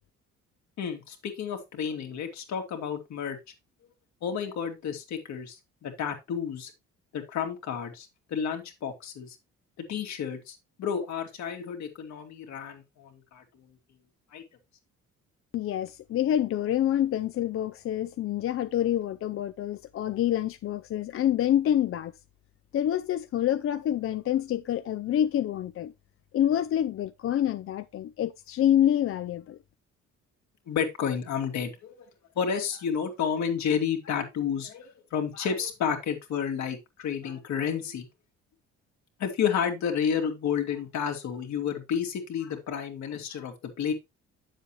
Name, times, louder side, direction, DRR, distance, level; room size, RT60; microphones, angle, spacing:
voice 1, 0.8-3.4 4.2-6.7 7.1-9.4 9.9-13.4 14.3-14.4 30.7-32.1 32.4-38.1 39.2-43.9, left 7 dB, 70° left, 2.3 m, -31 dB
voice 2, 15.5-22.1 22.7-25.9 26.3-29.6, left 11 dB, 50° left, 0.5 m, -27 dB
8.7 x 7.3 x 3.1 m
cardioid pair, 100°, 29 cm